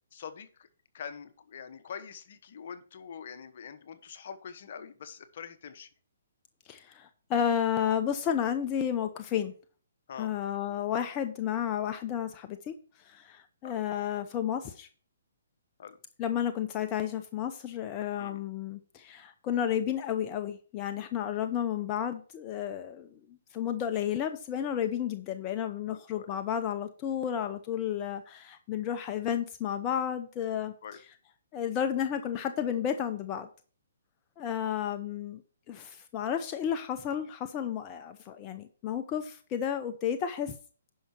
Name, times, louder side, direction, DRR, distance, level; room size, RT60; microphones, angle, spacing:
voice 1, 0.1-0.7 0.9-5.9 10.1-10.3 13.6-13.8 15.8-16.0 18.2-18.4 25.9-26.3 30.8-31.0, left 7 dB, 55° left, 11 dB, 1.0 m, -44 dB
voice 2, 6.7-9.5 10.2-14.9 16.2-23.1 23.5-30.7 31.5-33.5 34.4-35.4 35.7-40.5, left 9 dB, 25° left, 7 dB, 0.7 m, -32 dB
10.5 x 5.7 x 4.3 m, 0.40 s
figure-of-eight pair, 135°, 0 cm